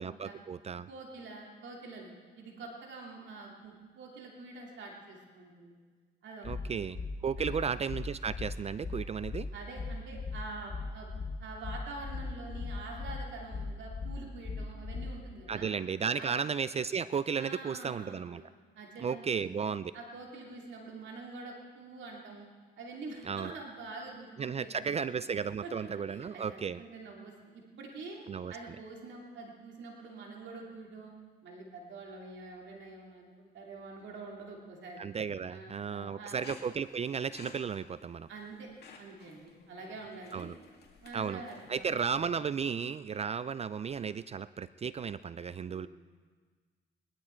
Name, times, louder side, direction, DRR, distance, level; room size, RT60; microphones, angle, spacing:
voice 1, 0.0-0.9 6.4-9.5 15.5-18.4 19.0-19.9 23.2-23.5 24.4-26.8 28.3-28.5 35.0-38.3 40.3-40.6 41.1-41.4 41.7-45.9, right 6 dB, 30° right, 16 dB, 0.3 m, -34 dB
voice 2, 0.9-5.7 6.2-6.9 7.4-7.6 9.0-9.1 9.5-15.7 16.2-16.3 17.4-18.5 18.7-19.5 19.9-22.5 22.8-25.3 25.6-28.2 28.5-31.1 31.4-35.1 35.5-36.4 38.3-38.7 39.0-40.5 41.0-41.9 45.4-45.9, right 3 dB, 70° right, -1 dB, 2.6 m, -46 dB
sound 1, 6.4-15.4, left 4 dB, 35° left, 0.9 m, -38 dB
sound 2, 36.4-42.3, left 5 dB, 55° left, 2.3 m, -54 dB
21.0 x 11.5 x 4.5 m, 1.5 s
cardioid pair, 90°, 20 cm